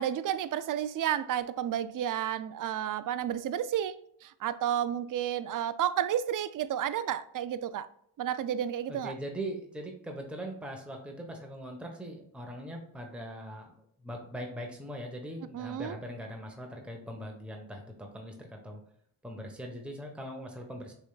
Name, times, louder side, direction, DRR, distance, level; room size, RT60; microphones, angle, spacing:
voice 1, 0.0-3.9 4.2-7.9 8.2-9.1 15.5-16.0, right 10 dB, 45° right, 0.4 m, -31 dB
voice 2, 8.9-18.8 19.2-20.9, equal, ahead, 1.1 m, -41 dB
6.0 x 3.5 x 2.4 m
cardioid pair, 40°, 50 cm